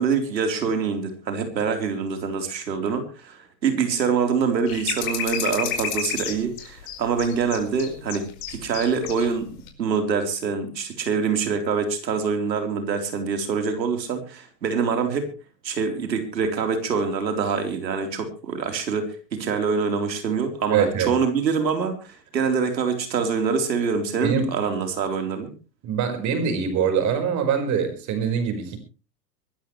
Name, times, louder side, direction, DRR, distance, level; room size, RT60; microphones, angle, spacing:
voice 1, 0.0-9.5 9.8-15.3 15.6-25.5, right 5 dB, 80° right, 6 dB, 4.1 m, -25 dB
sound 1, 4.7-9.3 9.6-9.7, left 8 dB, 55° left, 5.0 m, -30 dB
voice 2, 20.7-21.1 24.2-24.5 25.8-28.8, right 7 dB, 35° right, 7 dB, 5.1 m, -23 dB
24.0 x 13.0 x 3.2 m, 0.33 s
hypercardioid pair, 115°, 50 cm